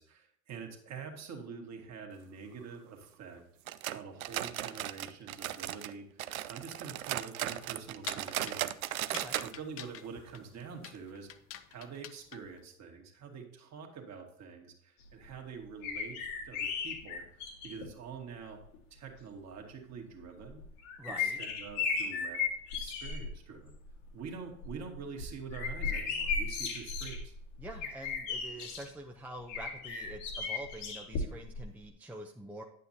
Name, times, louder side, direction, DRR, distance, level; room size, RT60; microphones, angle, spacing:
voice 1, 0.0-3.4 3.9-6.1 6.5-8.7 9.4-11.3 11.7-16.2 16.4-17.2 17.6-18.6 18.9-20.6 21.0-22.4 22.7-23.7 24.1-27.3, right 5 dB, 40° right, 3 dB, 1.9 m, -46 dB
sound 1, 3.7-5.9 6.2-9.5 9.8-9.9 10.3-10.4 10.9-11.0, right 13 dB, 80° right, 0.5 m, -37 dB
sound 2, 7.5-12.6, left 10 dB, 35° left, 0.6 m, -48 dB
sound 3, 15.8-17.9 18.7-18.8 20.4-23.3 23.7-24.1 24.5-28.9 29.5-31.6 31.9-32.0, left 5 dB, 65° left, 1.8 m, -36 dB
voice 2, 21.0-21.4 27.6-32.6, right 1 dB, 5° right, 2 dB, 0.6 m, -46 dB
9.3 x 8.3 x 2.8 m, 0.68 s
hypercardioid pair, 80°, 41 cm